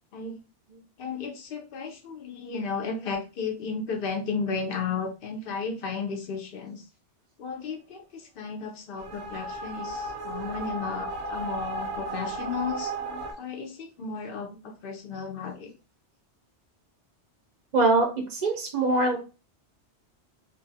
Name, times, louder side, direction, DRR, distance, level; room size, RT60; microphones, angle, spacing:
voice 1, 1.0-6.8 7.4-12.9 13.4-15.7, left 5 dB, 60° left, 3 dB, 0.8 m, -34 dB
sound 1, 9.0-13.3, right 2 dB, 75° right, 0.8 m, -34 dB
voice 2, 17.7-19.2, right 3 dB, 50° right, 2 dB, 0.6 m, -23 dB
2.6 x 2.3 x 2.6 m, 0.32 s
omnidirectional pair, 1.2 m